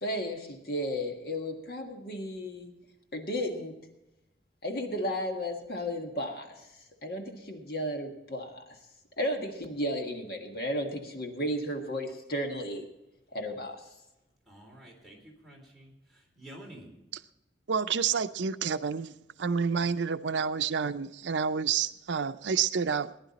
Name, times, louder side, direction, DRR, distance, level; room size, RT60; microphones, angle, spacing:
voice 1, 0.0-2.7 3.1-3.8 4.6-6.6 7.0-8.8 9.2-12.8 13.3-13.8, equal, 55° left, 3 dB, 1.6 m, -34 dB
voice 2, 14.5-16.9, right 1 dB, ahead, -2 dB, 3.7 m, -50 dB
voice 3, 17.7-23.1, right 6 dB, 80° right, 11 dB, 0.5 m, -29 dB
19.0 x 10.5 x 4.2 m, 0.92 s
head